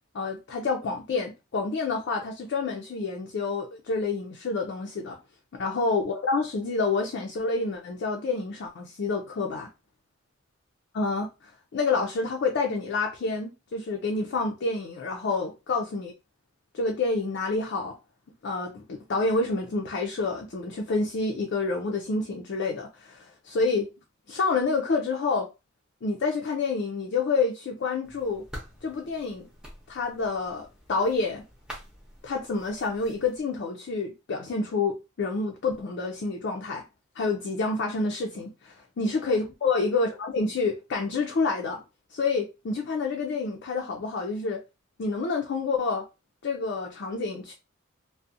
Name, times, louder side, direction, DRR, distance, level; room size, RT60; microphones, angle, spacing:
voice 1, 0.1-5.2 5.5-9.7 10.9-11.3 11.7-16.1 16.7-18.0 18.4-23.9 24.3-25.5 26.0-28.4 28.8-29.5 29.9-31.4 32.2-36.8 37.2-41.8 42.1-44.6 45.0-46.1 46.4-47.5, left 3 dB, 55° left, 0.4 m, -28 dB
sound 1, 28.0-33.4, equal, 5° right, 0.6 m, -47 dB
2.4 x 2.0 x 2.5 m
head